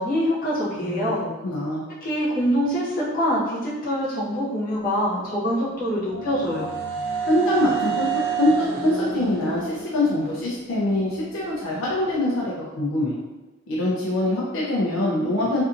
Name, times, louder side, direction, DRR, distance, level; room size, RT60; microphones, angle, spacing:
voice 1, 0.0-1.2 2.0-6.7, equal, 45° left, -8 dB, 0.8 m, -24 dB
voice 2, 0.7-1.9 7.3-13.1 13.7-15.6, left 1 dB, 70° left, -5 dB, 0.5 m, -24 dB
sound 1, 5.3-11.2, right 6 dB, 80° right, 0.4 m, -30 dB
2.6 x 2.4 x 2.5 m, 1.1 s
head